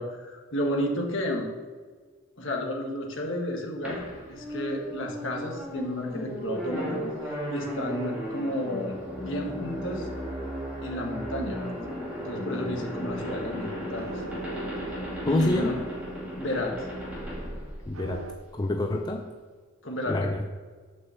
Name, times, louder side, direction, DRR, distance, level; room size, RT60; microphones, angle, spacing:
voice 1, 0.0-1.5 2.4-4.0 4.3-7.0 7.5-10.1 10.8-11.6 12.2-14.2 14.9-15.0 15.2-15.8 16.4-16.9 19.8-20.3, left 1 dB, 60° left, 1 dB, 1.6 m, -32 dB
sound 1, 3.8-18.4, equal, 5° right, 2.2 m, -35 dB
sound 2, 13.1-18.4, right 3 dB, 80° right, 0.8 m, -44 dB
voice 2, 15.3-15.8 17.9-18.2 18.5-19.3 20.1-20.4, left 2 dB, 20° left, 3 dB, 0.4 m, -27 dB
6.2 x 5.8 x 7.0 m, 1.5 s
head